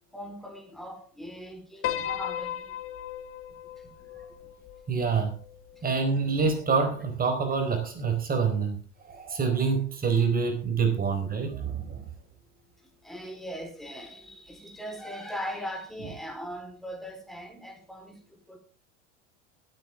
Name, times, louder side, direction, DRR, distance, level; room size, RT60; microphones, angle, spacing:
voice 1, 0.1-2.7 13.0-18.2 18.5-18.6, equal, ahead, 4.1 m, -39 dB
Piano, 1.8-6.2, left 11 dB, 35° left, 1.6 m, -36 dB
voice 2, 4.9-5.4 5.8-8.8 9.0-12.0, right 5 dB, 25° right, 4.5 m, -26 dB
23.0 x 8.9 x 3.6 m
figure-of-eight pair, 80°, 37 cm